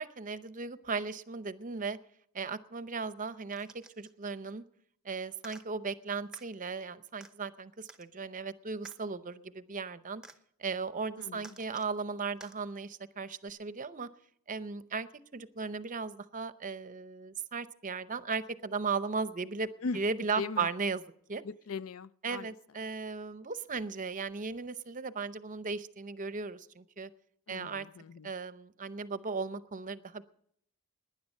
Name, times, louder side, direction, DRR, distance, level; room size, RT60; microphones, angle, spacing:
voice 1, 0.0-2.0 2.3-4.6 5.0-10.2 10.6-14.1 14.5-19.7 19.9-21.0 21.3-21.4 22.2-27.1 27.5-27.9 28.2-30.2, right 4 dB, 35° right, 0.7 m, -36 dB
sound 1, 3.5-4.1 5.4-5.6 6.3-6.5 7.2-7.3 7.9-8.1 8.8-9.0 10.2-10.4 11.4-11.9 12.4-12.6 13.5-13.6, right 2 dB, 5° right, 0.9 m, -52 dB
voice 2, 11.2-11.6 19.8-20.0 20.4-20.7 21.4-22.5 27.5-28.3, left 4 dB, 65° left, 0.5 m, -39 dB
18.5 x 10.5 x 5.4 m
head